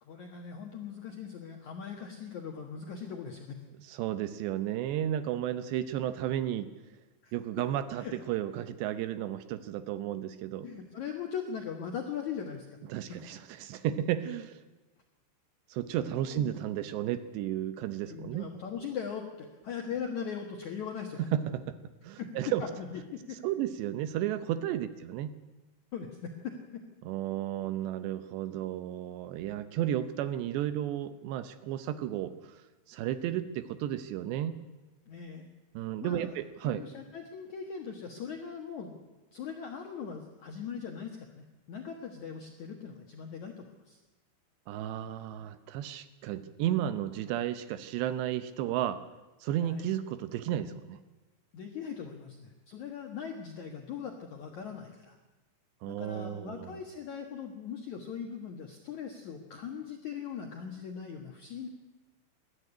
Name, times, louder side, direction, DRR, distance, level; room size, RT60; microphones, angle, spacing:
voice 1, 0.0-3.6 7.2-7.3 7.9-8.2 10.6-12.7 16.3-16.5 18.1-21.3 22.2-22.3 22.8-23.4 25.9-26.8 35.1-35.5 36.0-36.3 36.6-39.0 39.3-44.0 49.6-49.9 51.5-55.2 55.9-61.7, left 7 dB, 65° left, 3 dB, 1.9 m, -40 dB
voice 2, 3.9-6.7 7.3-10.7 12.9-14.6 15.7-18.5 21.3-21.7 22.0-22.7 23.4-25.3 27.0-32.6 32.9-34.6 35.7-36.8 44.7-49.0 49.4-51.0 55.8-56.8, right 11 dB, 75° right, 12 dB, 2.7 m, -33 dB
20.5 x 13.5 x 10.0 m, 1.1 s
omnidirectional pair, 5.5 m